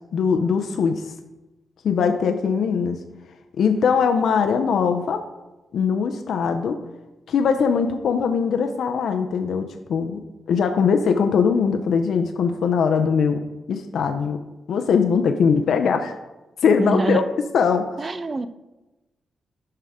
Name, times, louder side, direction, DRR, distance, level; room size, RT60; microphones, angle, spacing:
voice 1, 0.1-1.0 1.8-3.0 3.6-5.2 5.7-6.8 7.3-10.2 10.5-13.4 13.7-14.4 14.7-16.1 16.6-17.2 17.5-17.9, left 6 dB, 75° left, 6 dB, 0.6 m, -21 dB
voice 2, 16.8-17.2 18.0-18.5, right 3 dB, 30° right, 13 dB, 0.5 m, -24 dB
11.0 x 5.6 x 3.6 m, 1.1 s
cardioid pair, 105°, 0 cm